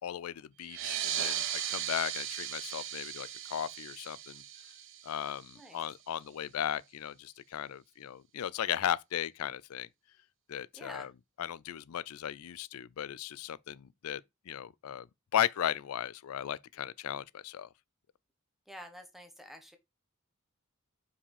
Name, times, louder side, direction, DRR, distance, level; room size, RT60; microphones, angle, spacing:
voice 1, 0.0-4.4 5.0-9.9 10.5-11.1 11.4-14.2 14.5-15.1 15.3-17.7, left 10 dB, 85° left, 0.4 m, -36 dB
sound 1, 0.6-5.8, right 10 dB, 60° right, 0.8 m, -37 dB
voice 2, 10.7-11.1 18.7-19.8, equal, ahead, 1.3 m, -48 dB
5.6 x 4.9 x 4.9 m
head